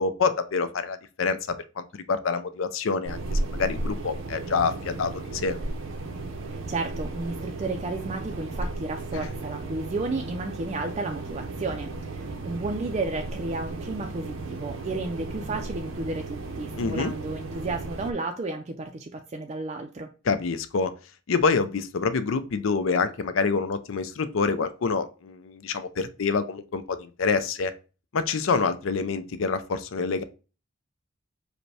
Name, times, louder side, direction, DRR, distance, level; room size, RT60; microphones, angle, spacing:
voice 1, 0.0-5.6 9.1-9.3 16.8-17.1 20.2-20.9 21.3-27.7 28.1-30.2, left 4 dB, 80° left, 0.5 m, -27 dB
sound 1, 3.0-18.1, right 2 dB, 80° right, 0.7 m, -34 dB
voice 2, 6.5-20.1, right 3 dB, 35° right, 0.4 m, -32 dB
5.1 x 2.1 x 4.7 m
head